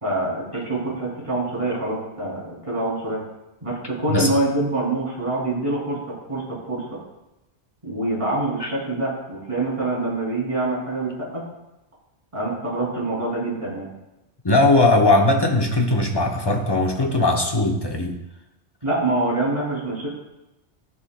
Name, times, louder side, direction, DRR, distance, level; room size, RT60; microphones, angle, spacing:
voice 1, 0.0-3.2 3.6-6.4 6.7-7.0 7.8-11.4 12.3-13.9 18.8-20.1, right 2 dB, 30° right, -5 dB, 2.8 m, -25 dB
voice 2, 14.4-18.2, left 2 dB, 25° left, 2 dB, 0.7 m, -19 dB
13.0 x 6.1 x 2.2 m, 0.92 s
omnidirectional pair, 1.1 m